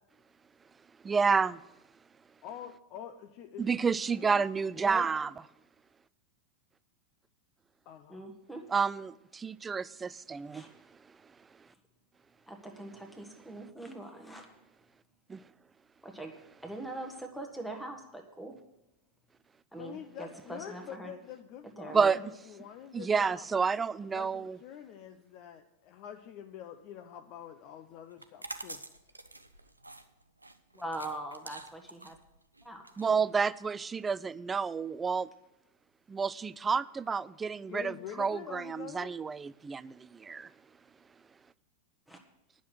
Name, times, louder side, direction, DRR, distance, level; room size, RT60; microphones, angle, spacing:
voice 1, 1.0-1.6 3.6-5.3 8.7-10.6 15.3-15.4 21.9-22.2 22.9-24.6 33.0-35.3 36.1-40.5, right 5 dB, 15° right, 0.3 m, -30 dB
voice 2, 2.4-4.5 7.9-8.3 19.8-23.5 24.0-28.8 37.7-39.2, left 9 dB, 40° left, 0.6 m, -46 dB
voice 3, 4.7-5.1 8.1-8.6 10.5-10.7 12.5-14.5 16.0-16.3 16.6-18.5 19.7-21.1 21.8-22.3 30.7-32.2 32.6-33.2 42.1-42.2, right 1 dB, ahead, 1.3 m, -42 dB
sound 1, 28.1-33.8, right 2 dB, 85° right, 0.6 m, -47 dB
10.0 x 6.2 x 8.6 m
figure-of-eight pair, 90°, 0 cm